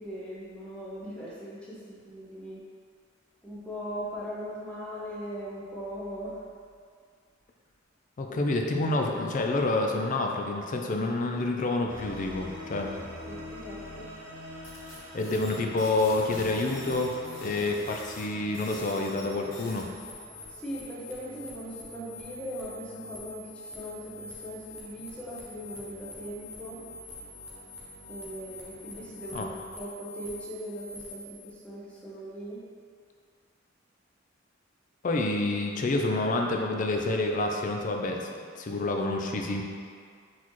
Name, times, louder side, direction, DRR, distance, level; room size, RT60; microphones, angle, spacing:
voice 1, 0.0-2.6 3.4-6.4 8.3-8.4 12.8-12.9 13.2-14.1 20.5-26.8 28.1-29.5 29.8-32.6, equal, 5° left, -8 dB, 0.9 m, -39 dB
voice 2, 8.2-12.9 15.1-17.1 17.4-19.9 29.3-29.5 35.0-39.6, left 2 dB, 40° left, 2 dB, 0.4 m, -28 dB
sound 1, 11.9-29.7, left 1 dB, 70° right, 0.7 m, -47 dB
sound 2, 14.6-31.5, left 2 dB, 75° left, 1.0 m, -46 dB
4.1 x 4.1 x 3.1 m, 2.1 s
head